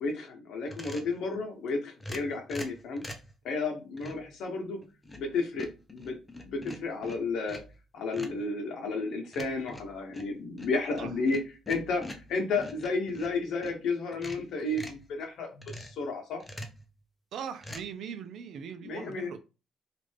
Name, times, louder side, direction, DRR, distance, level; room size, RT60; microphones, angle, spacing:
voice 1, 0.0-3.0 3.4-4.8 5.1-6.2 6.4-7.6 7.9-11.4 11.7-16.4 18.8-19.3, left 3 dB, 75° left, 0.8 m, -32 dB
sound 1, 0.7-1.2 2.0-3.3 4.0-4.3 4.8-5.3 5.6-7.8 8.1-8.4 9.3-13.8 14.1-15.1 15.6-16.0 16.4-16.8 17.6-17.8, left 1 dB, 15° left, 0.7 m, -44 dB
voice 2, 17.3-19.4, right 7 dB, 70° right, 0.5 m, -40 dB
3.1 x 2.5 x 3.2 m
cardioid pair, 85°, 0 cm